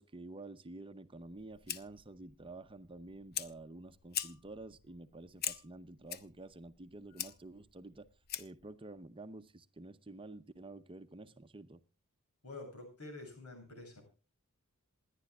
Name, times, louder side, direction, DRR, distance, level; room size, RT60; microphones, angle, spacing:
voice 1, 0.0-8.1 8.4-11.8, right 2 dB, 25° right, 0.7 m, -50 dB
Fire, 1.2-8.7, left 9 dB, 45° left, 0.8 m, -44 dB
voice 2, 12.4-14.0, left 2 dB, 85° left, 7.7 m, -48 dB
27.5 x 11.0 x 2.4 m
head